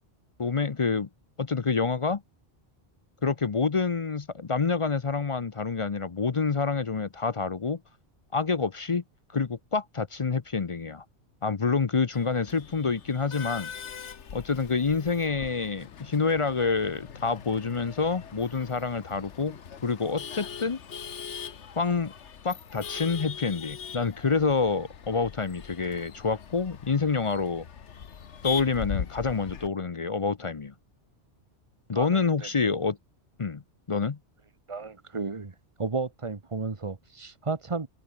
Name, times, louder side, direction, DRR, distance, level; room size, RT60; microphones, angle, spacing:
voice 1, 0.4-1.1 1.4-2.2 3.2-7.8 8.3-9.0 9.3-11.0 11.4-13.7 14.3-20.8 21.8-22.1 22.4-27.6 28.4-30.7 31.9-33.0 33.4-33.6 33.9-34.2, left 4 dB, 35° left, 0.6 m, -27 dB
Male speech man speaking / Laughter / Chatter, 12.1-29.7, left 7 dB, 80° left, 1.5 m, -41 dB
voice 2, 31.9-32.5 34.7-35.5 35.8-37.9, right 4 dB, 25° right, 1.4 m, -33 dB
omnidirectional pair, 1.2 m